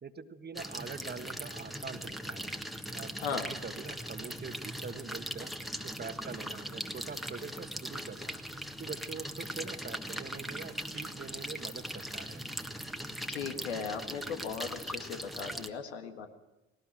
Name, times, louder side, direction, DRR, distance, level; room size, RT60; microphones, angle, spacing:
voice 1, 0.0-2.5 2.9-5.6 5.8-8.4 8.8-12.4, right 5 dB, 30° right, 10 dB, 1.5 m, -44 dB
sound 1, 0.6-15.7, equal, ahead, 1.6 m, -40 dB
voice 2, 3.2-3.5 13.3-16.3, left 6 dB, 75° left, 6 dB, 1.8 m, -37 dB
19.5 x 18.5 x 7.8 m, 1.0 s
figure-of-eight pair, 50°, 33 cm